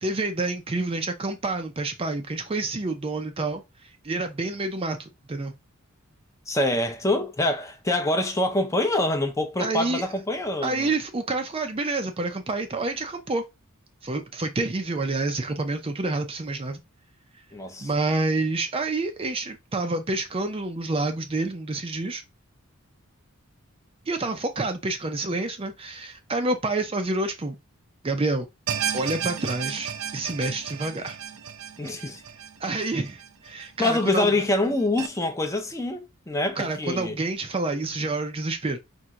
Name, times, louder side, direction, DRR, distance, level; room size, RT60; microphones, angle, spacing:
voice 1, 0.0-5.5 9.6-10.1 10.6-13.5 14.0-16.8 17.8-22.2 24.1-27.6 28.0-28.5 28.9-31.2 32.6-34.3 36.6-38.8, right 2 dB, 25° right, 0.5 m, -28 dB
voice 2, 6.5-10.9 17.5-17.9 31.8-32.2 33.8-37.2, left 2 dB, 15° left, 0.7 m, -25 dB
sound 1, 28.7-33.9 34.3-34.4 35.0-35.1, right 8 dB, 80° right, 0.6 m, -33 dB
4.4 x 2.7 x 3.6 m
head